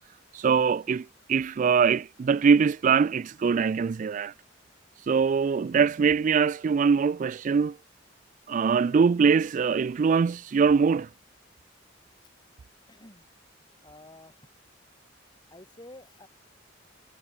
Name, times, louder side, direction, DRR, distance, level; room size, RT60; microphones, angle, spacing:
voice 1, 0.3-4.3 5.0-7.8 8.5-11.1, right 6 dB, 40° right, 0.3 m, -23 dB
voice 2, 12.9-13.2 13.8-14.3 15.5-16.3, left 1 dB, 20° left, 4.3 m, -49 dB
head